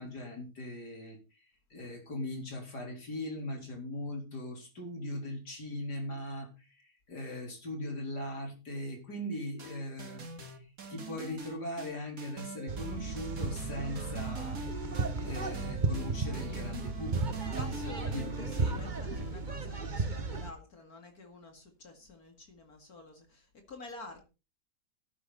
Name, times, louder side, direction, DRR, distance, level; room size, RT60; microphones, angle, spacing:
voice 1, 0.0-14.6 15.2-17.7 18.1-18.6, left 1 dB, 80° left, 2 dB, 4.6 m, -40 dB
sound 1, 9.6-19.5, right 3 dB, 60° right, 2.6 m, -43 dB
sound 2, 12.7-20.5, right 3 dB, 30° right, 1.4 m, -34 dB
voice 2, 17.6-24.2, left 3 dB, 65° left, 4 dB, 2.6 m, -49 dB
13.5 x 10.5 x 4.1 m, 0.31 s
omnidirectional pair, 1.7 m